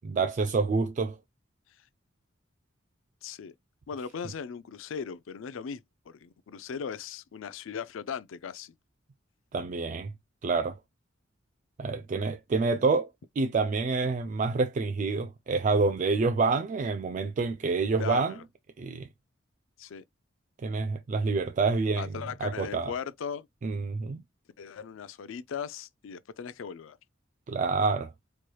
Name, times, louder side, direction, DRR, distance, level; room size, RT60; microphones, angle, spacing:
voice 1, 0.0-1.2 9.5-10.1 10.4-10.8 11.8-13.1 13.4-18.3 18.8-19.1 20.6-22.9 23.6-24.2 27.5-28.1, right 4 dB, 40° right, 0.3 m, -27 dB
voice 2, 3.2-3.5 3.9-8.7 18.0-18.4 19.8-20.0 22.0-23.5 24.6-27.0, left 7 dB, 85° left, 0.4 m, -38 dB
4.4 x 3.1 x 2.2 m
head